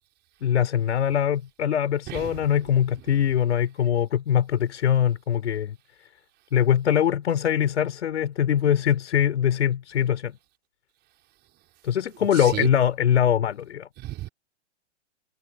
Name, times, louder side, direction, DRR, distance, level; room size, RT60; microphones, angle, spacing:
voice 1, 0.4-5.8 6.5-10.4 11.8-13.9, left 9 dB, 70° left, 5.4 m, -22 dB
voice 2, 2.1-2.4 12.4-12.7 14.0-14.3, right 16 dB, 30° right, 5.2 m, -32 dB
hypercardioid pair, 135°, 36 cm